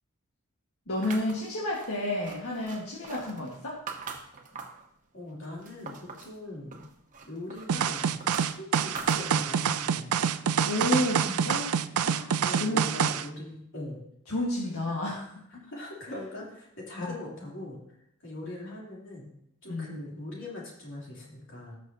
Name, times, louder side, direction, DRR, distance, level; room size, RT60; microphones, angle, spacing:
voice 1, 0.9-3.8 10.7-11.7 12.0-12.3 12.6-12.8 14.3-15.3 17.0-17.2 19.7-20.1, left 1 dB, 80° left, -4 dB, 1.6 m, -31 dB
sound 1, 1.0-4.9 5.3-6.4 6.7-9.7, right 5 dB, 35° right, 1.0 m, -43 dB
voice 2, 5.1-6.8 7.3-8.1 8.4-10.3 11.3-11.9 12.4-14.0 15.5-17.8 18.2-19.3 19.6-21.7, left 1 dB, 60° left, -4 dB, 3.3 m, -41 dB
sound 2, 7.7-13.3, right 7 dB, 85° right, 0.4 m, -26 dB
18.0 x 6.2 x 2.8 m, 0.76 s
head